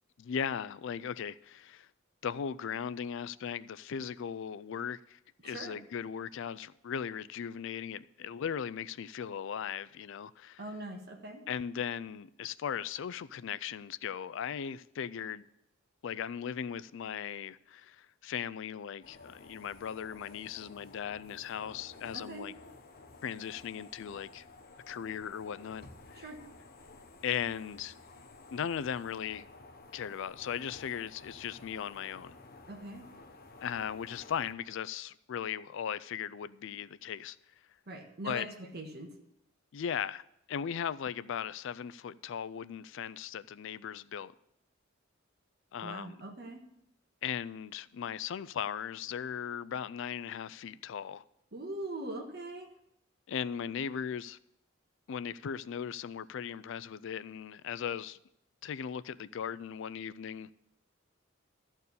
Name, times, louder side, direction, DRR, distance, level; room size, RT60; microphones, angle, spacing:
voice 1, 0.2-1.9 2.2-10.6 11.5-15.5 16.0-22.6 23.2-24.4 24.9-26.3 27.2-27.9 28.5-29.5 29.9-32.3 33.6-37.4 38.2-38.5 39.7-40.2 40.5-44.3 45.7-46.2 47.2-51.2 53.3-54.4 55.1-58.2 58.6-60.5, left 8 dB, 65° left, 0.4 m, -38 dB
voice 2, 5.4-5.8 10.6-11.4 22.1-22.5 26.2-26.4 32.7-33.1 37.9-38.5 38.7-39.1 45.8-46.6 51.5-52.7, right 2 dB, 55° right, 1.5 m, -42 dB
sound 1, 19.0-34.5, left 3 dB, 50° left, 0.9 m, -53 dB
13.5 x 4.5 x 8.3 m
head